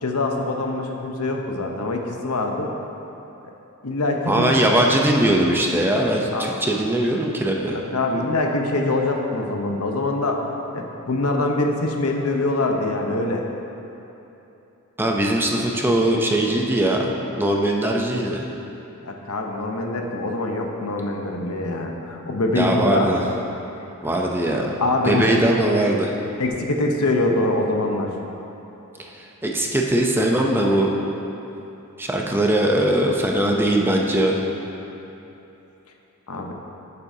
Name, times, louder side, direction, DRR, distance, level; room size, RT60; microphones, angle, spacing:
voice 1, 0.0-2.7 3.8-4.5 6.3-6.5 7.7-13.5 19.0-23.1 24.8-25.3 26.4-28.2 36.3-36.5, left 2 dB, 80° left, 2 dB, 0.9 m, -24 dB
voice 2, 4.3-7.8 15.0-17.1 17.4-18.4 22.5-23.2 24.0-24.8 25.0-26.1 29.4-30.9 32.0-34.4, right 1 dB, 10° right, 0 dB, 0.6 m, -20 dB
13.0 x 6.8 x 2.8 m, 3.0 s
head